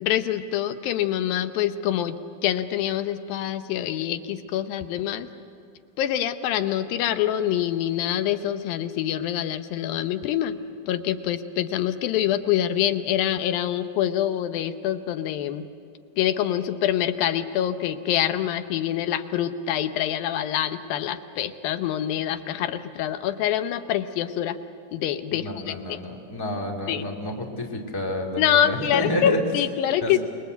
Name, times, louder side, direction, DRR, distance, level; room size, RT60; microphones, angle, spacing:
voice 1, 0.0-5.3 6.0-10.6 10.9-15.6 16.2-24.6 24.9-26.0 26.9-27.0 28.4-30.2, left 11 dB, 80° left, 10 dB, 2.5 m, -25 dB
voice 2, 25.3-29.4 30.0-30.2, left 1 dB, 10° left, 0 dB, 1.8 m, -29 dB
26.5 x 22.0 x 8.1 m, 2.4 s
omnidirectional pair, 4.1 m